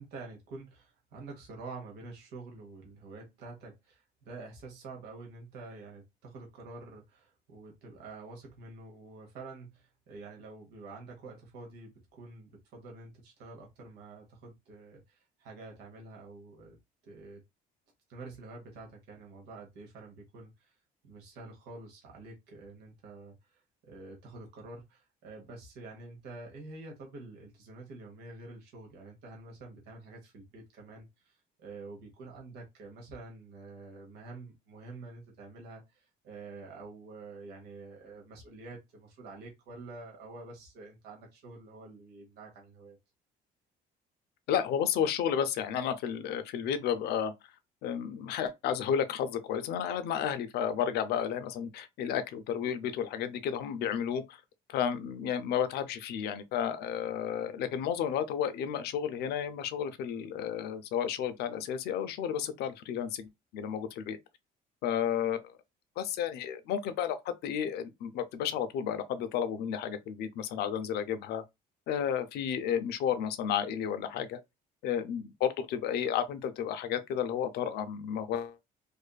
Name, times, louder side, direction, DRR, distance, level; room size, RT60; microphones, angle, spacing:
voice 1, 0.0-16.8 17.0-17.4 18.1-20.7 21.0-43.0, right 3 dB, 80° right, 1.0 m, -48 dB
voice 2, 44.5-47.3 47.8-54.4 54.7-64.2 64.8-65.5 66.0-71.4 71.9-74.4 74.8-78.7, left 8 dB, 75° left, 0.5 m, -32 dB
2.5 x 2.4 x 2.2 m
cardioid pair, 110°, 17 cm